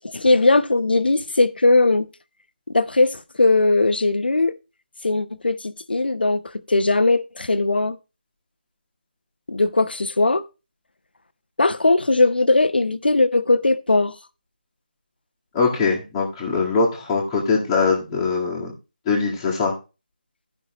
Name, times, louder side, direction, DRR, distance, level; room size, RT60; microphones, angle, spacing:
voice 1, 0.0-2.1 2.7-4.5 5.0-6.4 6.7-8.0 9.5-10.4 11.6-14.1, left 2 dB, 85° left, 0.8 m, -19 dB
voice 2, 15.5-18.7 19.1-19.7, left 4 dB, 5° left, 1.9 m, -22 dB
15.5 x 5.6 x 3.0 m
figure-of-eight pair, 175°, 5 cm